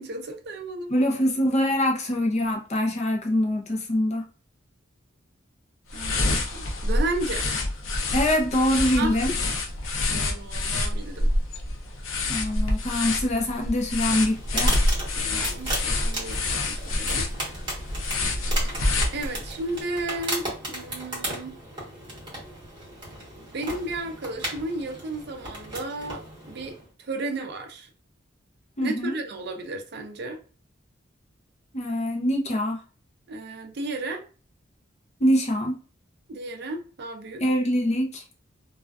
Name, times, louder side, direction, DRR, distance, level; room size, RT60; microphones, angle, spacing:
voice 1, 0.0-0.9 5.9-7.5 9.0-9.2 10.1-11.3 15.2-17.3 19.1-21.6 23.4-27.9 28.8-30.4 33.3-34.2 36.3-37.4, right 2 dB, 55° right, 0.4 m, -33 dB
voice 2, 0.9-4.2 8.1-9.3 12.3-14.7 28.8-29.2 31.7-32.8 35.2-35.8 37.4-38.2, left 1 dB, 35° left, 0.5 m, -24 dB
sound 1, 5.9-19.6, left 2 dB, 85° left, 0.5 m, -27 dB
sound 2, 14.2-26.9, right 1 dB, 25° right, 1.0 m, -35 dB
2.4 x 2.3 x 2.2 m
head